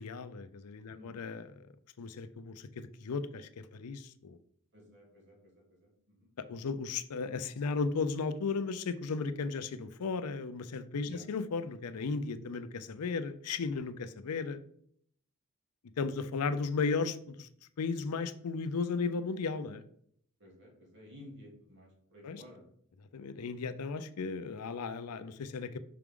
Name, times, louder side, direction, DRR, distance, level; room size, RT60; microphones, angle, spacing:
voice 1, 0.0-1.5 2.0-4.4 6.5-14.6 16.0-17.5 17.8-19.8 22.2-22.4 23.1-25.8, left 4 dB, 85° left, 11 dB, 0.5 m, -35 dB
voice 2, 0.9-1.2 4.7-6.3 11.0-11.2 20.4-22.7, left 1 dB, 55° right, -1 dB, 2.3 m, -54 dB
5.9 x 4.7 x 3.7 m, 0.66 s
head